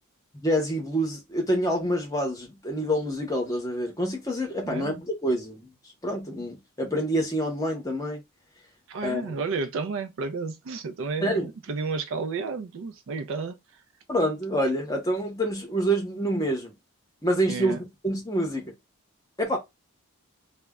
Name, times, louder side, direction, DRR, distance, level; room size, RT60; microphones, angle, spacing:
voice 1, 0.3-5.6 6.0-8.2 9.0-9.3 11.2-11.5 14.1-16.7 17.2-18.7 19.4-19.6, equal, 15° left, 0.7 m, -27 dB
voice 2, 4.7-5.0 8.9-13.6 17.5-17.8, right 4 dB, 60° right, 0.4 m, -32 dB
2.1 x 2.0 x 3.5 m
head